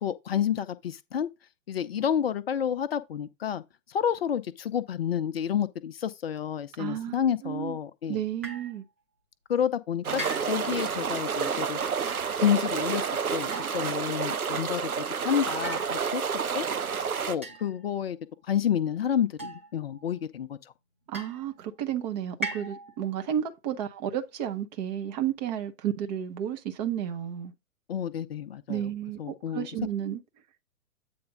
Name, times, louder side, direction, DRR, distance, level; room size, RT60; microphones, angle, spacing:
voice 1, 0.0-1.3 1.7-3.6 3.9-8.2 9.5-11.8 12.4-16.2 16.5-16.7 16.9-18.2 18.5-20.6 27.9-28.9 29.2-29.7, left 9 dB, 45° left, 0.7 m, -29 dB
voice 2, 6.8-7.2 7.4-7.8 8.1-8.8 21.1-27.5 28.7-30.2, right 10 dB, 30° right, 1.0 m, -32 dB
sound 1, 8.4-8.8 10.2-10.8 12.0-12.3 13.5-14.1 15.6-16.4 17.4-18.0 19.4-20.0 21.1-21.7 22.4-23.1, right 1 dB, 10° right, 0.3 m, -39 dB
sound 2, 10.0-17.4, right 6 dB, 75° right, 0.9 m, -30 dB
8.6 x 3.4 x 5.0 m
figure-of-eight pair, 120°, 44 cm